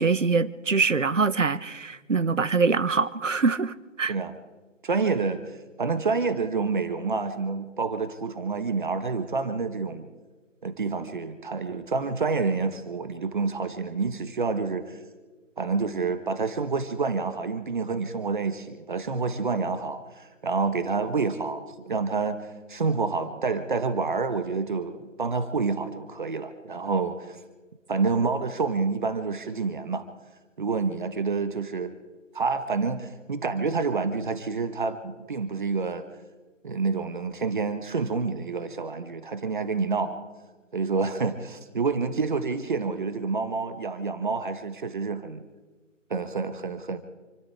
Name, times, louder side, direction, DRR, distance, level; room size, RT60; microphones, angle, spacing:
voice 1, 0.0-4.1, right 4 dB, 75° right, 1.2 m, -24 dB
voice 2, 4.8-10.1 10.6-15.0 15.6-27.4 27.9-30.1 30.6-31.9 32.3-36.0 36.6-40.2 40.7-45.4 46.1-47.0, right 4 dB, 40° right, 1.5 m, -28 dB
29.0 x 13.5 x 3.6 m
figure-of-eight pair, 155°, 38 cm